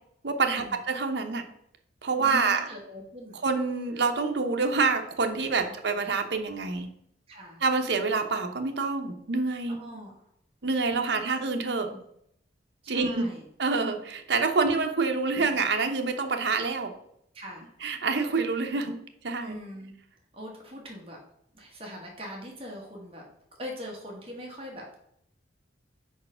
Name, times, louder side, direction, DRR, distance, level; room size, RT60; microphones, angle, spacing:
voice 1, 0.2-1.4 2.0-2.7 3.3-6.9 7.6-9.8 10.6-11.9 12.9-13.3 13.6-16.9 17.8-18.9 19.2-19.5, right 4 dB, 65° right, 5 dB, 0.8 m, -27 dB
voice 2, 2.1-3.4 5.5-5.7 7.3-7.6 9.8-10.2 10.9-11.4 11.8-12.0 12.8-13.5 14.6-14.7 15.3-15.5 17.3-17.7 19.4-19.9 20.3-21.2 21.5-23.2 23.6-25.0, equal, 30° right, -1 dB, 1.4 m, -42 dB
4.8 x 4.7 x 5.6 m, 0.73 s
head